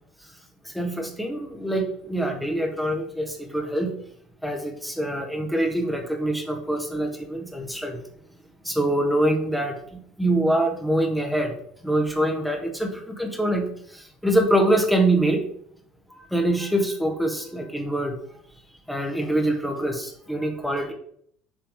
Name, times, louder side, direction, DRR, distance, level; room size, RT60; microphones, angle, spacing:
voice 1, 0.6-3.9 4.4-8.0 8.6-11.5 11.8-13.7 13.9-15.4 16.3-18.2 18.9-20.9, right 1 dB, ahead, 2 dB, 1.3 m, -24 dB
6.2 x 3.3 x 5.3 m, 0.65 s
figure-of-eight pair, 65°, 0 cm